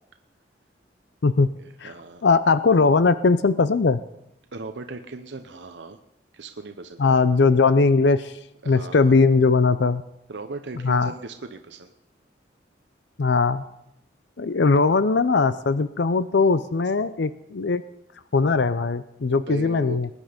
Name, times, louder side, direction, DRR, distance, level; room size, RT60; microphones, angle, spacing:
voice 1, 1.6-2.3 4.5-6.0 6.3-7.2 8.6-9.2 10.3-11.9 19.3-20.0, right 3 dB, 75° right, 7 dB, 0.8 m, -37 dB
voice 2, 2.2-4.0 7.0-8.4 8.7-10.0 10.8-11.1 13.2-13.6 14.4-17.8 18.3-20.1, left 4 dB, 70° left, 14 dB, 0.6 m, -20 dB
20.5 x 9.9 x 5.1 m, 0.81 s
head